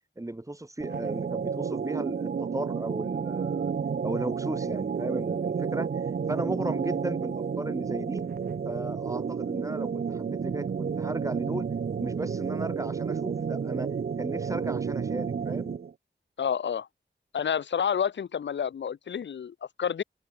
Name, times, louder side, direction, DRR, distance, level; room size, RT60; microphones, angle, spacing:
voice 1, 0.2-3.7 4.0-8.3 8.6-11.7 12.0-15.7, right 2 dB, 15° right, 0.7 m, -35 dB
sound 1, 0.8-15.9, right 6 dB, 55° right, 0.4 m, -31 dB
voice 2, 16.4-16.9 17.3-20.0, left 8 dB, 70° left, 0.4 m, -29 dB
wide cardioid pair, 55°, 20 cm